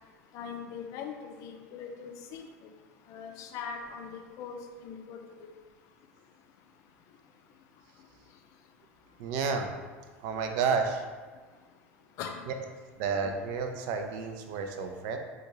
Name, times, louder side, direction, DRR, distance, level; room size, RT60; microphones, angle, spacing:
voice 1, 0.3-2.5 3.1-4.1 4.4-5.5 12.2-12.3, left 6 dB, 45° left, 4 dB, 0.5 m, -41 dB
voice 2, 9.2-9.7 10.2-11.0 13.0-15.2, right 5 dB, 50° right, 5 dB, 0.4 m, -30 dB
4.3 x 2.4 x 3.1 m, 1.4 s
figure-of-eight pair, 75°, 8 cm